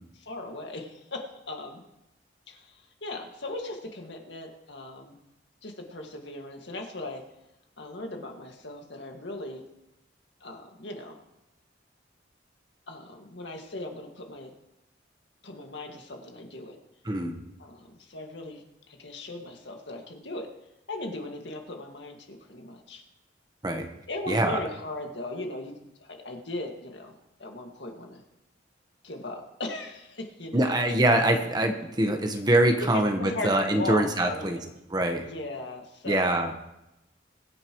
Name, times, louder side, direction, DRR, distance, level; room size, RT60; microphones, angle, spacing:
voice 1, 0.2-1.8 2.5-5.2 5.6-7.2 7.8-9.6 10.4-11.2 12.9-14.5 15.4-16.8 17.6-18.6 18.9-20.5 20.9-23.0 24.1-25.7 26.0-28.2 29.0-30.8 32.9-34.7 35.2-36.3, left 2 dB, 65° left, 2 dB, 1.9 m, -38 dB
voice 2, 17.0-17.4 23.6-23.9 24.3-24.6 30.5-34.6 34.9-35.3 36.0-36.5, right 1 dB, 20° right, 4 dB, 1.1 m, -24 dB
23.0 x 9.7 x 3.1 m, 0.90 s
head